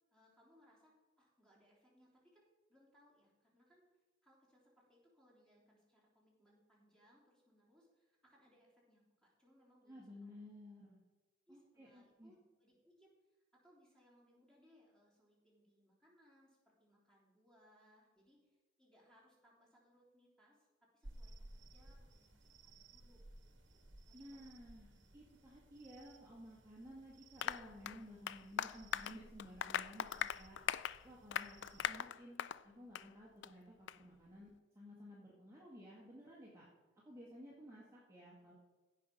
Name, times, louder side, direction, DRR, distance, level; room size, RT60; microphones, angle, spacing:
voice 1, 0.1-10.5 11.5-20.7 20.9-24.5 38.0-38.5, equal, 5° left, -5 dB, 3.4 m, -70 dB
voice 2, 9.9-11.0 11.5-12.3 24.1-30.6 31.0-36.6 37.0-38.5, equal, 15° right, -6 dB, 1.8 m, -55 dB
sound 1, 21.0-32.0, right 1 dB, 65° right, 1.6 m, -60 dB
Applause, 27.4-32.6 32.9-33.1 33.4-33.5 33.9-34.0, left 9 dB, 60° left, 0.3 m, -40 dB
15.5 x 5.8 x 5.3 m, 1.3 s
head